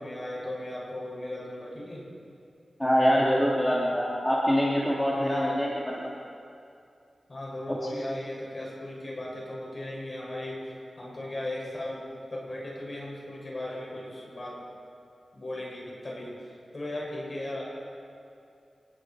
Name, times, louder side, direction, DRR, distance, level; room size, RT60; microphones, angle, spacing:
voice 1, 0.0-2.1 5.1-5.6 7.3-14.6 15.3-17.6, left 1 dB, 35° left, -4 dB, 7.3 m, -37 dB
voice 2, 2.8-6.1 7.7-8.0, equal, 10° left, -6 dB, 2.8 m, -25 dB
28.0 x 20.0 x 4.9 m, 2.5 s
wide cardioid pair, 110°, 0 cm